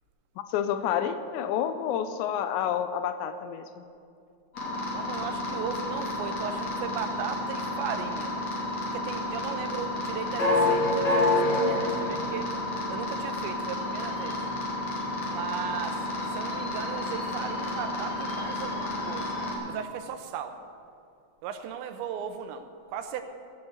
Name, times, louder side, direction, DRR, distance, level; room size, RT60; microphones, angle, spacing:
voice 1, 0.5-3.8, left 9 dB, 80° left, 9 dB, 2.7 m, -29 dB
sound 1, 4.5-19.5, left 2 dB, 40° left, 3.2 m, -29 dB
voice 2, 4.9-8.4 8.9-12.5 12.9-14.4 15.2-19.4 19.7-20.5 21.4-23.2, right 8 dB, 80° right, 8 dB, 2.9 m, -37 dB
17.5 x 6.4 x 8.6 m, 2.5 s
omnidirectional pair, 5.5 m